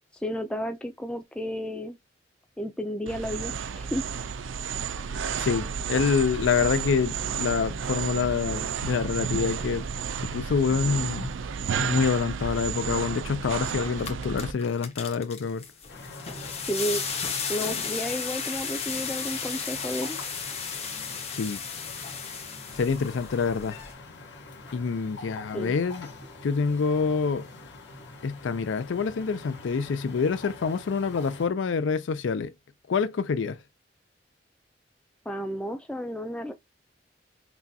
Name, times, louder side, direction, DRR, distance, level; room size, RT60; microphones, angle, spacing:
voice 1, 0.2-2.0 2.6-4.0 16.7-17.0 17.5-20.2 25.5-25.7 35.3-36.5, equal, 5° left, 0.3 m, -32 dB
sound 1, 3.1-14.5, right 6 dB, 85° right, 0.4 m, -32 dB
voice 2, 5.4-9.8 10.2-11.3 11.8-15.6 21.3-21.6 22.8-23.8 24.7-26.1 26.4-27.5 28.2-32.5 32.9-33.6, left 5 dB, 80° left, 0.4 m, -26 dB
sound 2, 13.4-13.5 13.9-23.9, left 6 dB, 35° left, 0.9 m, -34 dB
sound 3, 15.9-31.5, left 2 dB, 65° left, 1.5 m, -44 dB
6.0 x 2.3 x 2.7 m
head